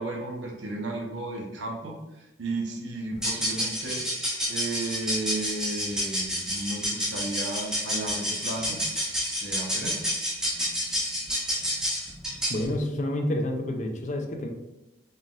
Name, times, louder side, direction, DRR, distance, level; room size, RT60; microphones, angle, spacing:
voice 1, 0.0-4.1 4.5-8.8 9.4-10.1, right 2 dB, 85° right, 0 dB, 0.9 m, -34 dB
sound 1, 3.1-12.7, equal, 5° right, 0.8 m, -29 dB
voice 2, 12.5-14.5, left 1 dB, 40° left, 3 dB, 0.5 m, -29 dB
4.1 x 3.8 x 2.5 m, 1.0 s
head